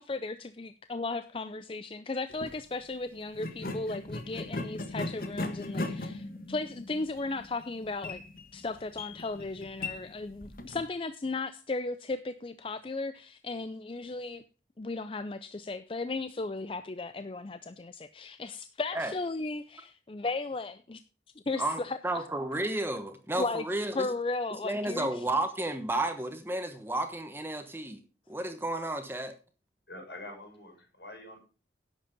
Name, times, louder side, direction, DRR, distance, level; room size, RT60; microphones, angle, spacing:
voice 1, 0.0-8.2 8.5-14.4 14.8-21.0 21.5-22.2 23.4-23.6 24.0-25.2, left 3 dB, 30° left, 0.5 m, -35 dB
sound 1, 2.3-2.6 3.3-10.9, left 2 dB, 55° left, 1.5 m, -38 dB
voice 2, 21.6-24.1 24.6-28.0 28.3-29.3, right 1 dB, 15° right, 1.1 m, -32 dB
voice 3, 29.9-31.4, left 1 dB, 70° left, 6.2 m, -45 dB
11.0 x 7.7 x 5.1 m
head